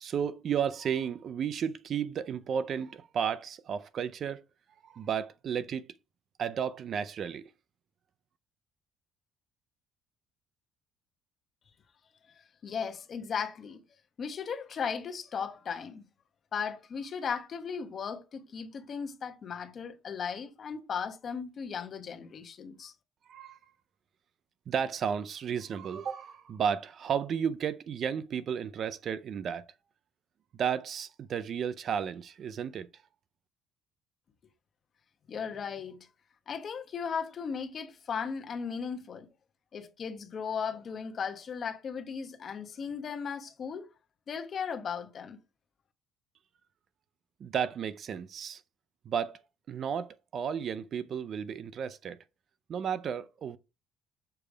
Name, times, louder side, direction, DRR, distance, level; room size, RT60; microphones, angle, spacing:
voice 1, 0.0-4.4 4.8-5.9 6.4-7.5 23.3-23.6 24.7-29.7 30.5-32.9 47.4-48.6 49.1-49.4 49.7-52.2 52.7-53.6, right 7 dB, 45° right, 0.4 m, -33 dB
voice 2, 12.4-13.8 14.2-16.0 16.5-22.9 35.3-36.1 36.5-39.3 39.7-43.9 44.3-45.4, left 6 dB, 40° left, 1.1 m, -36 dB
6.8 x 3.2 x 4.9 m
cardioid pair, 130°, 0 cm